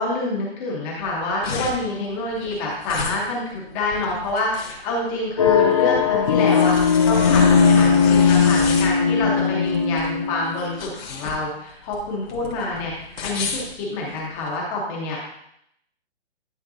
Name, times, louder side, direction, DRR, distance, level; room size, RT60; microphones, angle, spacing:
voice 1, 0.0-15.2, left 2 dB, 15° left, -2 dB, 0.9 m, -27 dB
sound 1, 1.0-14.5, left 4 dB, 60° left, 1.9 m, -32 dB
sound 2, 5.4-10.8, left 6 dB, 30° left, 0.4 m, -18 dB
11.0 x 5.1 x 2.6 m, 0.74 s
hypercardioid pair, 165°, 34 cm